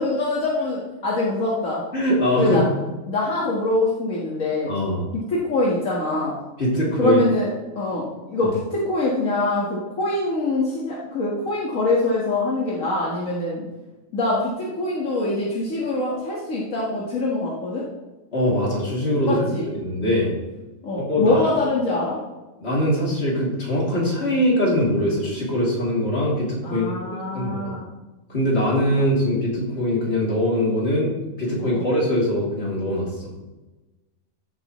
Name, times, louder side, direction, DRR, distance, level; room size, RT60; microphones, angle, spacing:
voice 1, 0.0-1.8 2.4-2.6 3.1-4.7 5.3-6.3 7.0-13.7 14.1-17.9 19.3-19.7 20.8-22.2 26.6-27.9 31.6-31.8, left 2 dB, 75° left, -5 dB, 2.0 m, -24 dB
voice 2, 1.9-2.6 4.7-5.1 6.6-7.2 8.4-8.5 18.3-19.5 19.8-20.3 21.0-21.4 22.6-27.0 27.3-27.7 28.3-33.3, left 1 dB, 50° left, -4 dB, 3.0 m, -22 dB
14.0 x 7.9 x 3.1 m, 1.1 s
omnidirectional pair, 1.4 m